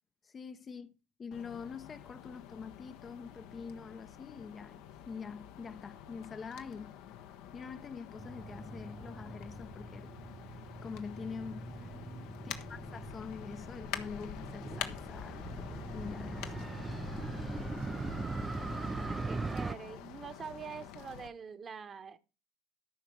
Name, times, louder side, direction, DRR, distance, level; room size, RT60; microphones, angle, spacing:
voice 1, 0.2-0.9 1.2-7.0 7.5-10.1 10.8-11.7 12.4-15.4 15.9-16.7, left 5 dB, 35° left, 0.8 m, -45 dB
sound 1, 1.3-21.3, left 10 dB, 65° left, 1.1 m, -47 dB
Motorcycle, 8.2-19.7, right 3 dB, 20° right, 0.6 m, -41 dB
voice 2, 11.7-12.3 18.9-22.2, right 6 dB, 35° right, 1.3 m, -46 dB
13.5 x 5.8 x 4.7 m
figure-of-eight pair, 60°, 0 cm